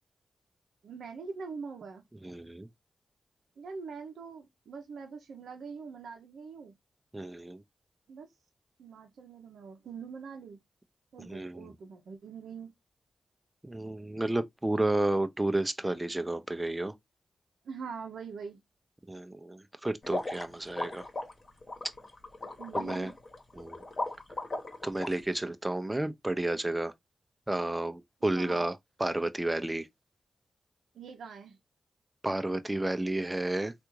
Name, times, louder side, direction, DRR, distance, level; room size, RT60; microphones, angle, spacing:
voice 1, 0.8-2.0 3.6-6.7 8.1-8.3 8.8-10.6 11.1-12.7 17.6-18.6 22.6-23.1 28.3-28.7 30.9-31.6, right 5 dB, 80° right, 0.6 m, -43 dB
voice 2, 2.2-2.7 7.1-7.6 11.3-11.7 13.6-16.9 19.1-21.0 22.7-23.1 23.6-23.8 24.8-26.9 27.5-29.9 32.2-33.7, right 1 dB, 20° right, 0.5 m, -31 dB
sound 1, 20.0-25.1, left 2 dB, 50° left, 1.1 m, -37 dB
3.4 x 2.4 x 3.0 m
supercardioid pair, 40°, 0 cm